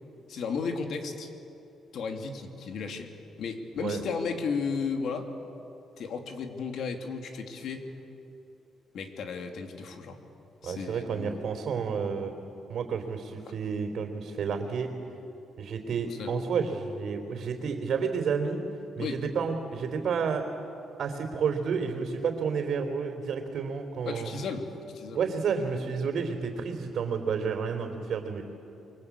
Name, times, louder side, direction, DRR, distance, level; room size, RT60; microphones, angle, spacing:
voice 1, 0.3-1.3 1.9-3.1 3.4-5.3 6.0-7.9 8.9-10.2 10.6-11.4 16.1-16.3 19.0-19.2 24.0-25.2, left 5 dB, 65° left, 4 dB, 2.9 m, -34 dB
voice 2, 10.6-12.3 12.7-14.9 15.6-18.6 19.0-20.5 21.0-24.4 25.1-28.4, right 6 dB, 60° right, 3 dB, 3.5 m, -30 dB
28.5 x 23.5 x 8.6 m, 2.9 s
cardioid pair, 120°, 0 cm